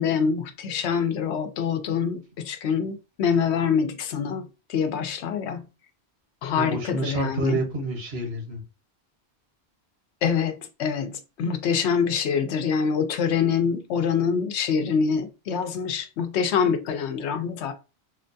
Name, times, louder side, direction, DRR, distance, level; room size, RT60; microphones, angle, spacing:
voice 1, 0.0-5.6 6.4-7.6 10.2-10.5 10.8-17.7, left 6 dB, 85° left, 0.9 m, -25 dB
voice 2, 6.5-8.6, right 2 dB, 70° right, 1.3 m, -28 dB
4.3 x 2.2 x 2.6 m
omnidirectional pair, 1.1 m